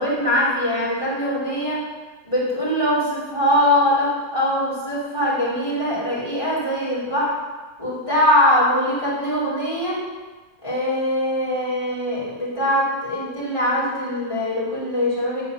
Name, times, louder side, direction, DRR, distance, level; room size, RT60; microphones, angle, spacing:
voice 1, 0.0-1.8 2.2-7.3 7.8-10.0 10.6-15.4, left 1 dB, 20° left, -9 dB, 3.1 m, -22 dB
10.0 x 4.0 x 5.6 m, 1.3 s
omnidirectional pair, 1.5 m